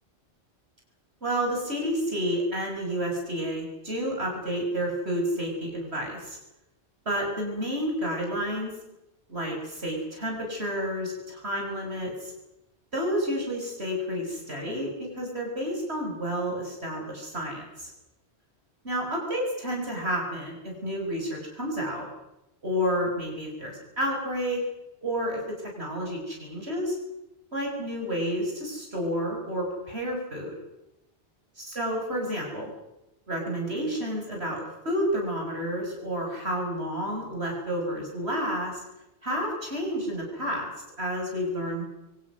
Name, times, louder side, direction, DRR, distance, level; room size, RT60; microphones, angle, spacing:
voice 1, 1.2-6.4 7.0-8.7 9.3-12.3 12.9-17.9 18.8-22.1 22.6-24.6 25.0-27.0 27.5-30.5 31.6-32.7 33.3-38.8 39.2-40.7 41.0-41.8, equal, 70° right, 0 dB, 6.7 m, -30 dB
28.0 x 24.5 x 6.3 m, 0.90 s
omnidirectional pair, 1.1 m